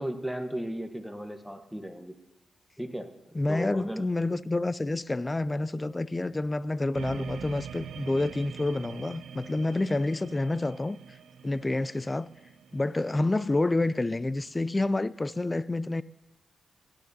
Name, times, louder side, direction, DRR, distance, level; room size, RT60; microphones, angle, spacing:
voice 1, 0.0-2.2 2.8-3.1 3.5-4.0, right 1 dB, ahead, 1.2 m, -35 dB
voice 2, 3.3-11.0 11.4-12.3 12.7-16.0, left 2 dB, 30° left, 0.4 m, -28 dB
sound 1, 6.9-14.2, right 7 dB, 80° right, 0.4 m, -44 dB
17.5 x 11.5 x 2.8 m
supercardioid pair, 45°, 0 cm